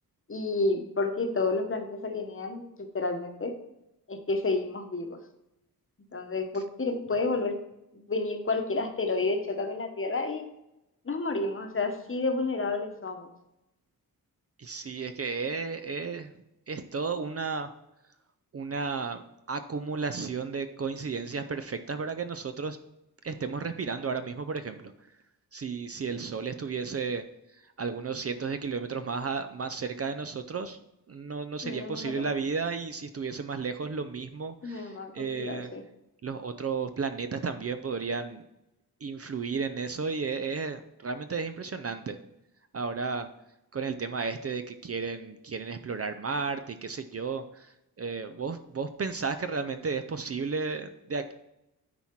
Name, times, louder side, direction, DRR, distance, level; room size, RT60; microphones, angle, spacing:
voice 1, 0.3-3.5 4.1-5.2 6.1-7.6 7.9-10.5 11.0-13.3 31.6-32.3 34.6-35.8, left 3 dB, 35° left, 5 dB, 1.0 m, -30 dB
voice 2, 14.6-16.3 16.7-17.7 18.5-19.2 19.5-22.8 23.2-24.9 25.5-27.2 27.8-30.8 31.1-35.7 36.2-38.4 39.0-42.2 42.7-43.3 43.7-51.3, right 5 dB, 40° right, 9 dB, 0.5 m, -33 dB
9.5 x 4.3 x 4.5 m, 0.87 s
wide cardioid pair, 125°, 36 cm